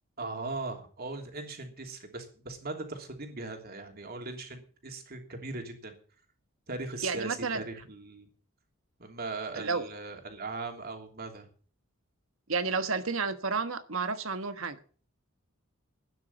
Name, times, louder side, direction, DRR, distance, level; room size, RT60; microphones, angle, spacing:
voice 1, 0.2-5.9 6.7-8.3 9.0-11.4, right 3 dB, 50° right, 3.0 m, -39 dB
voice 2, 7.0-7.6 9.5-9.9 12.5-14.8, right 4 dB, 75° right, 1.4 m, -31 dB
12.0 x 9.6 x 7.2 m
head